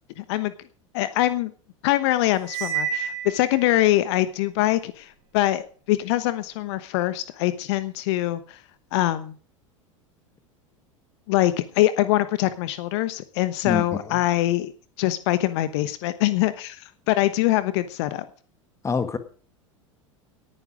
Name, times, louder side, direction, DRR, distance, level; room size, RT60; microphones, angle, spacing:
voice 1, 0.2-0.5 0.9-1.5 1.8-8.6 8.9-9.4 11.3-14.7 15.0-18.3, left 15 dB, 55° left, 14 dB, 1.1 m, -23 dB
Cymbal, 2.4-3.9, right 8 dB, 40° right, 4.7 m, -30 dB
voice 2, 13.6-14.0 18.8-19.2, left 5 dB, 15° left, 10 dB, 1.6 m, -25 dB
18.5 x 9.7 x 5.0 m, 0.43 s
figure-of-eight pair, 80°, 17 cm